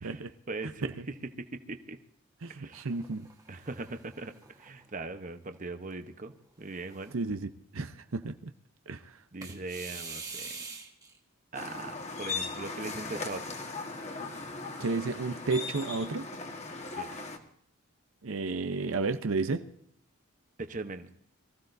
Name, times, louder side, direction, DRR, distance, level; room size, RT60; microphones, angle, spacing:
voice 1, 0.0-2.0 2.5-2.9 3.5-7.2 9.3-10.5 11.5-13.5 17.0-17.1 20.6-21.1, right 3 dB, 40° right, 8 dB, 0.9 m, -40 dB
voice 2, 2.4-3.2 7.1-7.5 7.7-8.5 8.9-9.0 14.8-16.3 18.2-19.6, right 3 dB, 75° right, 9 dB, 0.7 m, -32 dB
sound 1, 2.7-5.3 5.8-5.9 6.6-7.3 9.4-11.2 13.1-16.0, right 4 dB, 15° right, 1.4 m, -47 dB
sound 2, 11.5-17.4, left 4 dB, 30° left, 1.5 m, -38 dB
23.5 x 15.0 x 2.6 m, 0.66 s
head